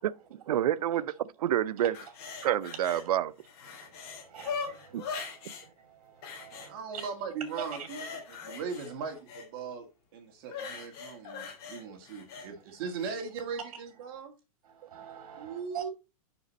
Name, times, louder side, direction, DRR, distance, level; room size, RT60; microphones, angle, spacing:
voice 1, 0.5-2.0 2.4-3.3 4.9-5.1, right 11 dB, 90° right, 0.5 m, -28 dB
sound 1, 1.9-3.1 3.4-5.7 6.2-7.1 7.5-9.5 10.5-12.5 13.0-13.1, left 5 dB, 45° left, 2.9 m, -41 dB
voice 2, 3.7-6.8 7.6-7.9 8.4-8.6 10.8-10.9 11.8-11.9 12.3-12.5 14.1-14.2 14.6-15.9, right 8 dB, 70° right, 2.3 m, -45 dB
voice 3, 6.6-9.9 10.1-14.3 15.4-15.9, right 5 dB, 40° right, 1.9 m, -39 dB
6.9 x 6.0 x 4.0 m
supercardioid pair, 170°, 19 cm